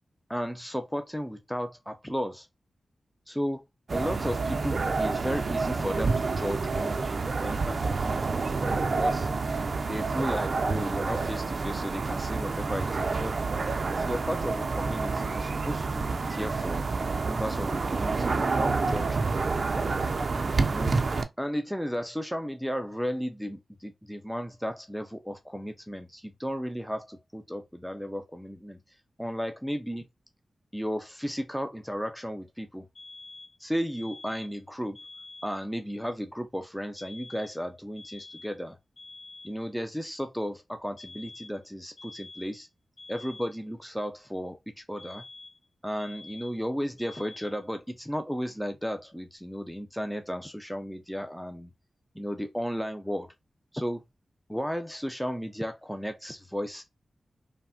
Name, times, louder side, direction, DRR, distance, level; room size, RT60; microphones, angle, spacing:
voice 1, 0.3-2.5 3.3-3.6 3.9-8.0 8.6-9.3 9.9-13.4 13.9-16.8 17.2-19.3 19.7-19.9 20.7-21.0 21.4-28.8 29.2-30.1 30.7-32.9 33.6-35.0 35.4-38.8 39.4-42.7 43.1-45.2 45.8-51.7 52.1-53.3 53.7-54.0 54.5-56.8, equal, ahead, 0.4 m, -34 dB
sound 1, 3.9-21.2, right 4 dB, 60° right, 0.4 m, -28 dB
sound 2, 32.9-33.6 33.9-34.6 34.9-35.6 37.0-37.6 38.0-38.6 39.0-39.6 41.0-41.6 42.0-42.6 43.0-43.6 45.0-45.7 46.0-46.6 47.0-47.6, left 3 dB, 65° left, 1.5 m, -47 dB
3.2 x 2.1 x 2.4 m
cardioid pair, 65°, 0 cm